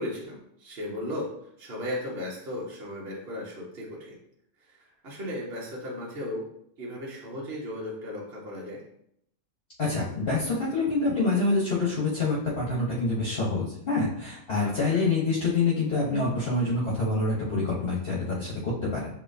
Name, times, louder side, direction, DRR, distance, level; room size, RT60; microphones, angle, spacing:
voice 1, 0.0-1.3 1.6-4.2 4.6-6.5 6.8-8.8 14.6-15.0, left 1 dB, 50° right, -4 dB, 1.3 m, -36 dB
voice 2, 9.8-19.1, left 3 dB, 50° left, -5 dB, 1.1 m, -26 dB
6.8 x 2.8 x 2.6 m, 0.71 s
omnidirectional pair, 1.4 m